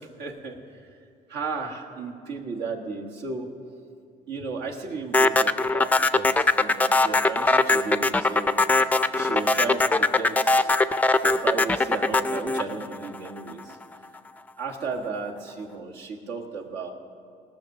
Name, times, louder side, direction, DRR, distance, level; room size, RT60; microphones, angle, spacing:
voice 1, 0.2-0.8 1.3-3.5 4.3-10.7 11.2-13.8 14.6-16.9, right 4 dB, 85° right, 0 dB, 1.5 m, -34 dB
sound 1, 5.1-13.5, left 3 dB, 10° left, 0.3 m, -21 dB
18.0 x 6.1 x 6.5 m, 2.3 s
cardioid pair, 110°, 17 cm